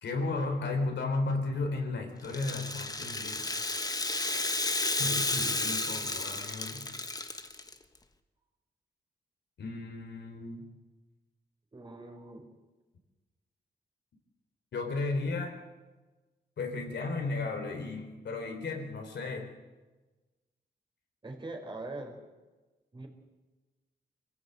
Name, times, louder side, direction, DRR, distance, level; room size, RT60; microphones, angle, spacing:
voice 1, 0.0-3.5 5.0-6.9 9.6-10.7 14.7-15.5 16.6-19.5, left 3 dB, 85° left, 3 dB, 4.0 m, -34 dB
Rattle (instrument), 2.2-7.7, left 2 dB, 20° left, 1.4 m, -32 dB
voice 2, 11.7-12.5 21.2-22.2 22.9-23.1, right 2 dB, 25° right, 2 dB, 4.7 m, -42 dB
25.0 x 16.0 x 8.3 m, 1.2 s
wide cardioid pair, 115°, 18 cm